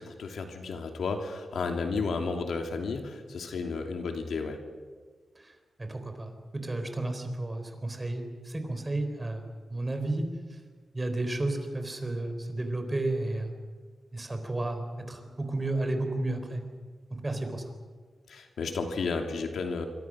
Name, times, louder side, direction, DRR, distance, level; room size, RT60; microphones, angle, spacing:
voice 1, 0.0-4.6 18.3-19.9, left 4 dB, 85° left, 4 dB, 2.8 m, -32 dB
voice 2, 5.8-9.4 9.7-10.2 10.9-13.5 14.1-16.6 17.1-17.6, right 2 dB, 20° right, 6 dB, 3.9 m, -32 dB
26.0 x 24.0 x 6.3 m, 1.5 s
wide cardioid pair, 100°, 0 cm